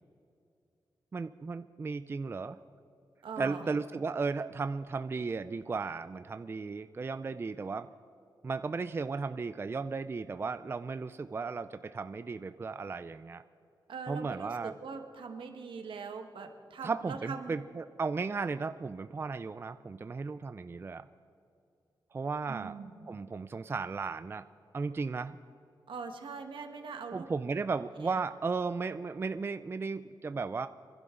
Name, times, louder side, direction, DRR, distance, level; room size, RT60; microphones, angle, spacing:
voice 1, 1.1-2.6 3.4-7.9 8.4-13.4 14.1-14.7 16.8-21.0 22.1-22.7 23.1-24.4 24.7-25.4 27.1-30.7, right 4 dB, 30° right, 11 dB, 0.3 m, -35 dB
voice 2, 3.2-3.7 13.9-17.5 22.5-23.1 25.9-27.2 28.0-28.2, right 5 dB, 80° right, 5 dB, 1.4 m, -42 dB
26.0 x 12.0 x 3.8 m, 2.5 s
wide cardioid pair, 115°, 8 cm